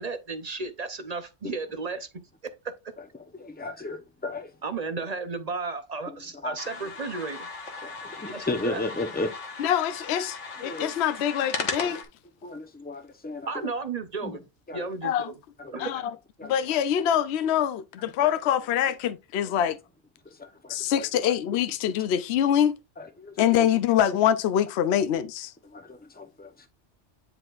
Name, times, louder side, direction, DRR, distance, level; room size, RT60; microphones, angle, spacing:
voice 1, 0.0-2.1 2.4-2.7 4.6-7.5 8.3-8.8 13.5-14.4 14.7-15.3 15.7-16.1, right 4 dB, 40° right, 0.7 m, -34 dB
voice 2, 3.3-4.5 6.4-6.6 7.8-9.3 10.6-10.9 11.8-11.9 12.4-13.5 14.2-14.3 14.7-14.9 15.6-15.9 16.4-16.5 20.3-21.1 23.0-23.7 25.7-26.7, left 2 dB, 10° left, 0.8 m, -35 dB
sound 1, 6.6-12.0, left 4 dB, 90° left, 1.6 m, -37 dB
voice 3, 9.6-12.0 15.0-15.3 15.8-16.1 16.4-19.8 20.7-22.8 23.4-25.5, left 10 dB, 70° left, 0.8 m, -25 dB
9.4 x 4.8 x 2.4 m
omnidirectional pair, 1.2 m